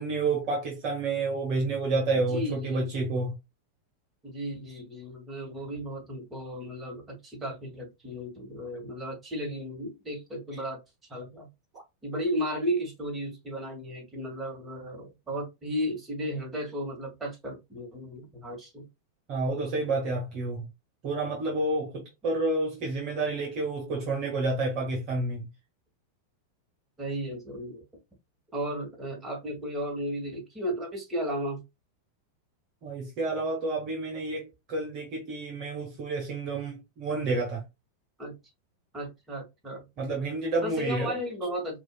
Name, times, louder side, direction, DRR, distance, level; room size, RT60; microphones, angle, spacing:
voice 1, 0.0-3.4 19.3-20.7 21.0-25.5 32.8-37.6 40.0-41.5, right 2 dB, 40° right, 1.3 m, -30 dB
voice 2, 2.2-2.9 4.2-10.8 11.1-11.5 12.0-18.8 27.0-27.8 28.5-31.6 38.2-38.4 38.9-39.9 40.6-41.8, equal, 15° right, 1.9 m, -34 dB
4.8 x 2.7 x 2.2 m
figure-of-eight pair, 90°, 0 cm